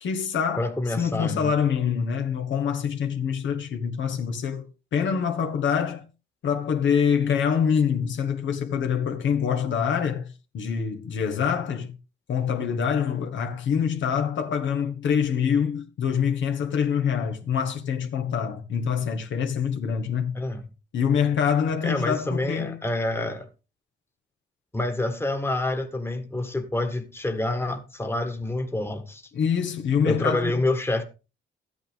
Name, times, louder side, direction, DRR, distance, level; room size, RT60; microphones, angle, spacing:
voice 1, 0.0-0.7 1.0-4.7 4.9-6.0 6.4-10.3 10.5-11.9 12.3-20.4 20.9-22.9 29.3-30.6, left 7 dB, 70° left, 1.7 m, -25 dB
voice 2, 0.6-1.5 20.4-20.6 21.8-23.5 24.7-29.2 30.0-31.0, left 2 dB, 10° left, 1.6 m, -27 dB
12.5 x 9.0 x 3.6 m
cardioid pair, 90°, 20 cm